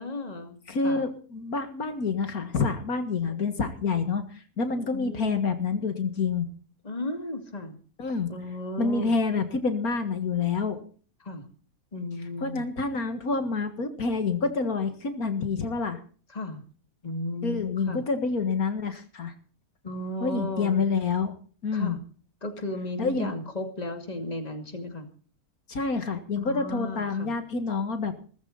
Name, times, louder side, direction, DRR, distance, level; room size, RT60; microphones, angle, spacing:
voice 1, 0.0-0.6 0.8-1.0 3.3-3.4 4.9-5.5 6.8-7.7 8.3-9.2 11.2-11.5 11.9-12.6 16.3-16.6 17.0-18.0 19.8-20.8 21.7-22.0 22.4-25.1 26.4-27.3, left 2 dB, 25° left, 6 dB, 2.5 m, -35 dB
voice 2, 0.7-6.5 8.0-8.3 8.8-10.8 12.4-16.0 17.4-19.3 20.2-21.3 21.6-22.0 23.0-23.3 25.7-28.2, left 4 dB, 75° left, 8 dB, 2.2 m, -27 dB
17.5 x 15.0 x 4.1 m, 0.41 s
omnidirectional pair, 1.6 m